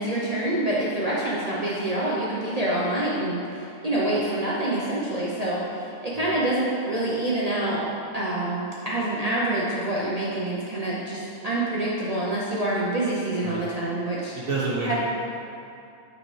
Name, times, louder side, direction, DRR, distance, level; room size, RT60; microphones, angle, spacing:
voice 1, 0.0-7.8 8.1-14.3 14.9-15.0, right 1 dB, 35° right, -7 dB, 0.6 m, -26 dB
voice 2, 14.3-15.0, right 3 dB, 70° right, -7 dB, 1.4 m, -29 dB
7.8 x 5.4 x 3.2 m, 2.6 s
omnidirectional pair, 1.6 m